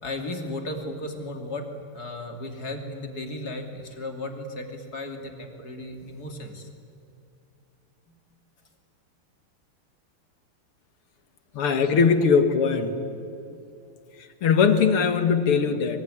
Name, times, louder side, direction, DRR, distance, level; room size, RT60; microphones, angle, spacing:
voice 1, 0.0-1.7 1.9-6.7 8.1-8.2, left 1 dB, 45° left, 4 dB, 3.3 m, -35 dB
voice 2, 11.5-13.0 14.2-16.0, left 6 dB, 85° left, 8 dB, 2.7 m, -21 dB
25.5 x 23.5 x 10.0 m, 2.6 s
omnidirectional pair, 2.4 m